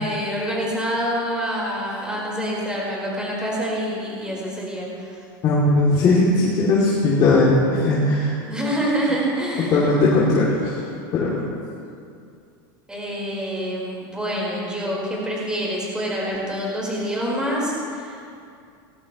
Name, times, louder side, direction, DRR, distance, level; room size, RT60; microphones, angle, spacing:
voice 1, 0.0-5.1 8.5-9.9 12.9-18.2, equal, 5° right, -4 dB, 4.6 m, -26 dB
voice 2, 5.4-8.3 9.7-10.8 11.1-11.3, left 2 dB, 35° left, -7 dB, 2.9 m, -18 dB
19.5 x 16.0 x 3.2 m, 2.4 s
supercardioid pair, 135°, 12 cm